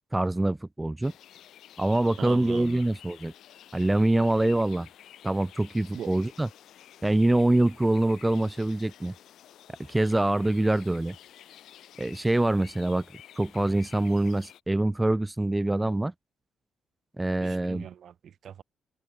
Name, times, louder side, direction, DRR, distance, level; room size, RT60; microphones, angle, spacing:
voice 1, 0.1-1.1 1.8-3.3 3.7-4.9 5.2-6.5 7.0-9.1 9.9-11.1 12.0-13.0 13.4-16.1 17.2-17.9, right 1 dB, 10° right, 2.8 m, -25 dB
sound 1, 1.0-14.6, left 11 dB, 75° left, 7.8 m, -51 dB
voice 2, 2.2-2.8 5.9-6.1 17.4-18.6, right 9 dB, 60° right, 4.8 m, -40 dB
cardioid pair, 90°, 0 cm